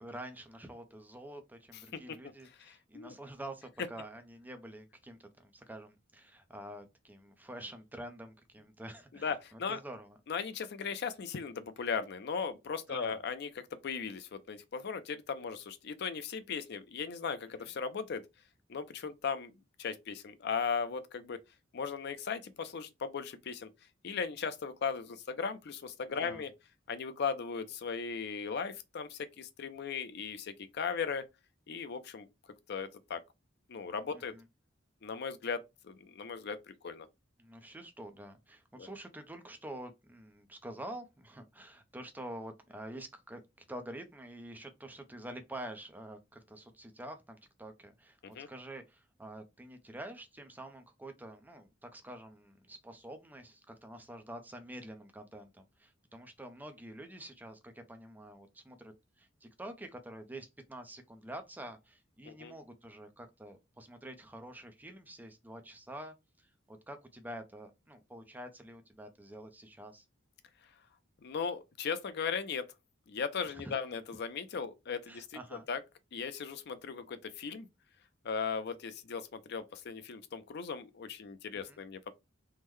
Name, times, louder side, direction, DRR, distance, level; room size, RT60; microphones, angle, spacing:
voice 1, 0.0-10.2 12.9-13.2 17.6-17.7 26.1-26.5 34.1-34.4 37.4-43.4 43.7-70.1 73.5-73.7 75.1-75.7 81.7-81.8, right 1 dB, 10° right, 0.5 m, -47 dB
voice 2, 2.6-3.1 9.2-9.8 10.3-13.5 13.8-18.2 18.7-19.5 19.8-21.4 21.7-23.7 24.0-26.5 26.9-31.2 31.7-32.3 32.7-33.2 33.7-34.3 35.0-37.1 38.8-38.9 48.2-48.5 62.3-62.5 71.2-72.7 73.1-75.8 76.1-77.7 78.2-82.1, left 6 dB, 55° left, 0.5 m, -37 dB
3.6 x 2.1 x 3.1 m
head